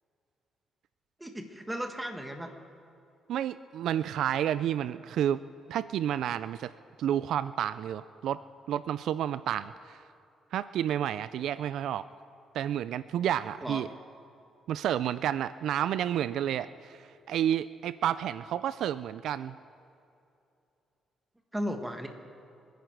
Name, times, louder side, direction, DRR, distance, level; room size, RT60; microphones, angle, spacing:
voice 1, 1.2-2.5 13.6-13.8 21.5-22.1, equal, 10° right, 4 dB, 1.8 m, -35 dB
voice 2, 3.3-5.4 5.7-6.7 7.0-8.4 8.7-10.0 10.5-12.1 12.5-13.9 14.7-19.5, right 10 dB, 75° right, 15 dB, 0.3 m, -30 dB
26.5 x 10.5 x 4.6 m, 2.6 s
cardioid pair, 90°, 0 cm